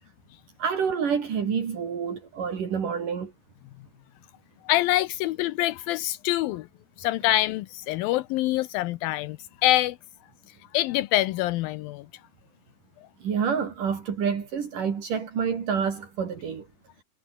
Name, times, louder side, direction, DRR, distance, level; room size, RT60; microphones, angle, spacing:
voice 1, 0.6-3.3 13.2-16.7, right 6 dB, 65° right, 4.6 m, -28 dB
voice 2, 4.6-6.7 7.0-10.0 10.7-12.1, left 16 dB, 80° left, 2.5 m, -25 dB
omnidirectional pair, 4.2 m